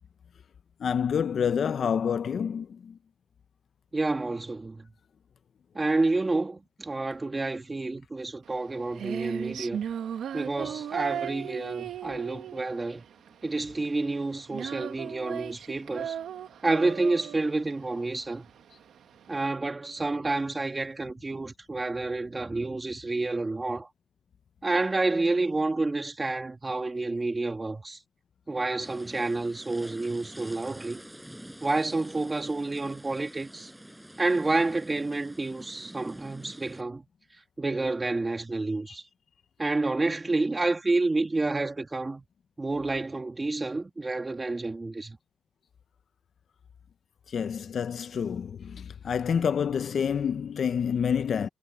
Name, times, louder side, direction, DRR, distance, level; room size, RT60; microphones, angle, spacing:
voice 1, 0.8-2.9 47.3-51.5, left 7 dB, 55° left, 0.8 m, -28 dB
voice 2, 3.9-4.8 5.7-9.8 10.3-13.0 13.4-16.1 16.6-18.4 19.3-23.9 24.6-28.0 28.5-31.0 31.6-33.7 34.2-37.0 37.6-39.0 39.6-42.2 42.6-45.2, right 2 dB, 20° right, 2.9 m, -29 dB
Female singing, 8.5-19.4, right 9 dB, 70° right, 1.6 m, -37 dB
sound 1, 28.8-36.8, right 1 dB, 5° right, 5.3 m, -47 dB
cardioid pair, 90°, 0 cm